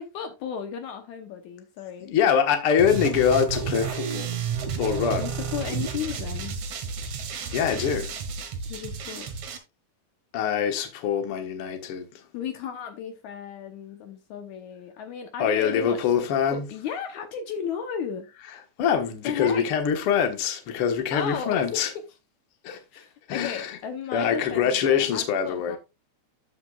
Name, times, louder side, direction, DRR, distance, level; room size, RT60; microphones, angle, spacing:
voice 1, 0.0-2.1 5.2-6.6 8.7-9.3 12.3-16.1 16.5-18.3 19.2-19.6 21.1-21.9 22.9-25.8, left 8 dB, 75° left, 2.2 m, -34 dB
voice 2, 2.0-4.3 4.8-5.3 7.5-8.1 10.3-12.1 15.4-16.7 18.8-21.9 22.6-23.0 23.3-23.8 24.1-25.8, left 7 dB, 55° left, 2.0 m, -24 dB
sound 1, 2.8-9.6, right 6 dB, 65° right, 2.7 m, -31 dB
13.5 x 5.8 x 2.4 m
omnidirectional pair, 3.6 m